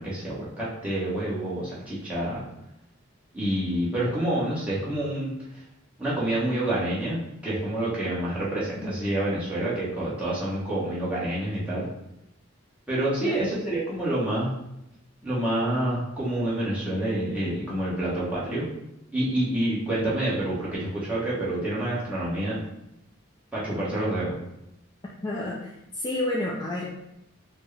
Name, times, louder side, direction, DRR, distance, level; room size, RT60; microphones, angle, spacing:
voice 1, 0.0-2.4 3.3-5.3 6.0-11.9 12.9-14.5 15.2-18.7 19.1-22.6 23.5-24.3, right 1 dB, 5° right, -9 dB, 1.1 m, -28 dB
voice 2, 13.2-13.6 25.2-26.8, left 1 dB, 20° left, -4 dB, 0.3 m, -30 dB
4.3 x 2.1 x 3.3 m, 0.84 s
head